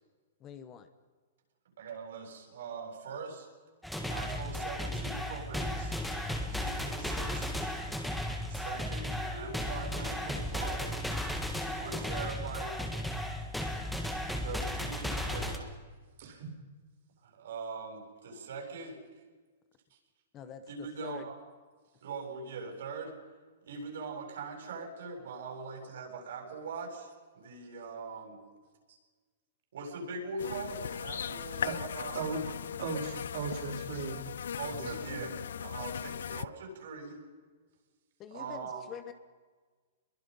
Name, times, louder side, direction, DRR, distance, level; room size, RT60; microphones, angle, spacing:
voice 1, 0.4-0.9 20.3-21.3 38.2-39.1, left 8 dB, 20° left, 11 dB, 1.0 m, -45 dB
voice 2, 1.8-3.5 4.1-6.0 6.5-7.5 8.5-10.9 11.8-12.8 14.4-15.7 17.2-19.0 20.7-21.4 22.0-23.1 23.7-28.4 28.9-29.0 29.7-32.2 34.5-35.3 35.6-37.2 38.3-38.8, right 4 dB, 65° right, 1 dB, 7.7 m, -41 dB
sound 1, 3.8-15.6, left 1 dB, ahead, 1.7 m, -35 dB
sound 2, 30.4-36.4, left 8 dB, 80° left, 0.5 m, -38 dB
voice 3, 32.8-34.2 34.6-35.3, right 5 dB, 50° right, 2 dB, 5.2 m, -37 dB
25.5 x 22.5 x 5.5 m, 1.4 s
hypercardioid pair, 170°, 0 cm